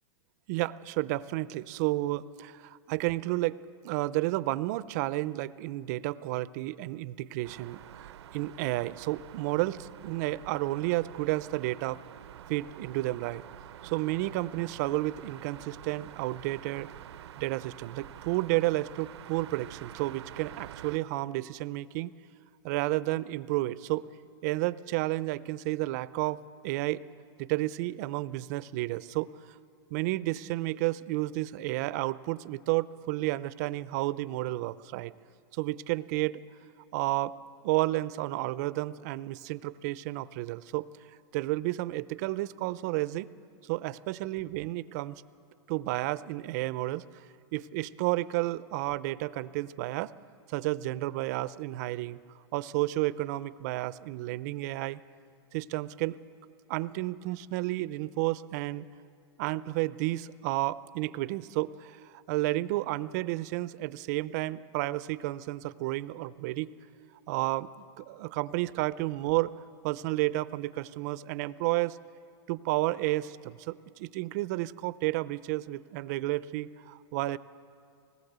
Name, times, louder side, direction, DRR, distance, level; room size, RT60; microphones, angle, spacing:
voice 1, 0.5-3.6 3.8-12.0 12.5-13.4 13.8-16.9 17.4-22.1 22.6-24.1 24.4-27.0 27.4-29.3 29.9-35.1 35.5-36.4 36.9-37.4 37.6-40.8 41.3-43.3 43.6-45.2 45.7-47.0 47.5-50.1 50.5-52.2 52.5-55.0 55.5-56.2 56.7-58.9 59.4-66.7 67.3-69.5 69.8-72.0 72.5-77.4, right 18 dB, 40° right, 17 dB, 0.5 m, -31 dB
sound 1, 7.4-21.0, right 11 dB, 80° right, 0.6 m, -48 dB
20.0 x 18.0 x 8.0 m, 2.4 s
supercardioid pair, 155°, 14 cm